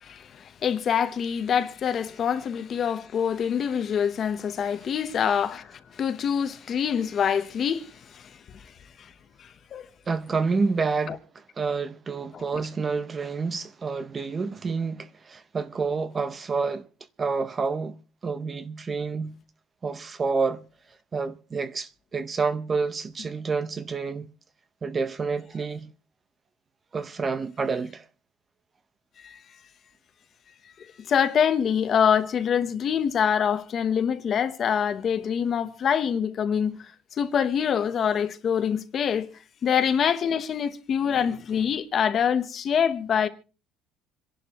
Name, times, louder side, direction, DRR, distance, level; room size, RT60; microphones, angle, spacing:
voice 1, 0.0-8.6 9.0-9.1 9.4-9.9 11.1-11.2 12.3-12.4 29.2-29.4 30.8-36.8 37.2-39.3 39.6-43.3, left 8 dB, 35° left, 1.0 m, -25 dB
voice 2, 10.1-16.8 17.2-18.0 18.2-19.3 19.8-20.6 21.1-24.3 24.8-25.9 26.9-28.1, right 4 dB, 25° right, 0.7 m, -28 dB
26.5 x 11.0 x 3.0 m
cardioid pair, 150°, 0 cm